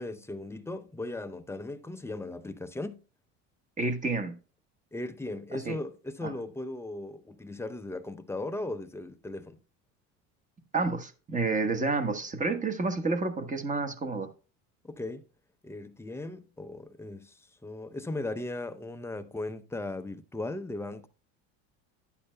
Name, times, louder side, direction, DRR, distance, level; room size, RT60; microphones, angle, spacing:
voice 1, 0.0-3.0 4.9-9.6 14.8-15.2 15.6-21.1, left 2 dB, 5° left, 0.6 m, -37 dB
voice 2, 3.8-4.4 5.6-5.8 6.2-6.3 10.7-14.3, right 3 dB, 20° right, 1.2 m, -29 dB
11.0 x 8.5 x 2.2 m
supercardioid pair, 95°, 36 cm